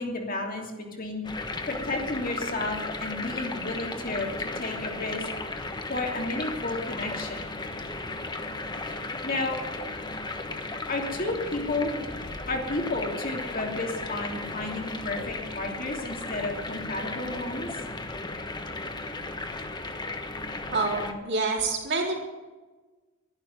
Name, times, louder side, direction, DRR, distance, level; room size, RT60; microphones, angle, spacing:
voice 1, 0.0-5.3 5.6-7.6 9.2-9.6 10.9-12.0 12.5-17.7, left 2 dB, 45° left, 1 dB, 2.9 m, -32 dB
sound 1, 1.2-21.1, left 2 dB, 20° left, 1.2 m, -35 dB
voice 2, 20.7-22.2, right 3 dB, 60° right, -1 dB, 3.9 m, -27 dB
11.5 x 11.5 x 9.3 m, 1.2 s
head